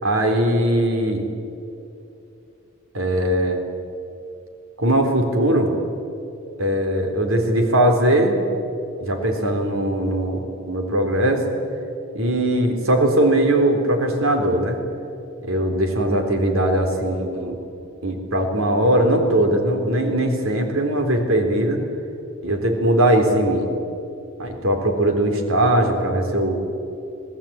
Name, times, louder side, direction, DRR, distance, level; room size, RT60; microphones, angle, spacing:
voice 1, 0.0-1.3 2.9-3.6 4.8-5.7 6.6-8.4 9.0-11.6 12.1-14.8 15.4-17.6 18.0-21.8 22.4-23.7 24.4-26.6, right 1 dB, 75° right, 4 dB, 3.9 m, -20 dB
27.0 x 18.5 x 8.9 m, 2.8 s
head